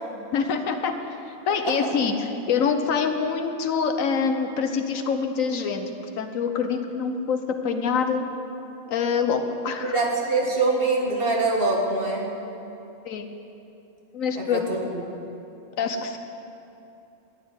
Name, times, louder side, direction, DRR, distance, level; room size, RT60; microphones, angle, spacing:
voice 1, 0.3-5.9 6.2-8.2 8.9-10.0 13.0-13.3 14.1-14.7 15.8-16.2, left 6 dB, 85° left, 6 dB, 1.3 m, -25 dB
voice 2, 9.8-12.3 14.4-15.0, right 3 dB, 45° right, -1 dB, 1.9 m, -24 dB
12.5 x 7.4 x 9.6 m, 2.9 s
omnidirectional pair, 1.4 m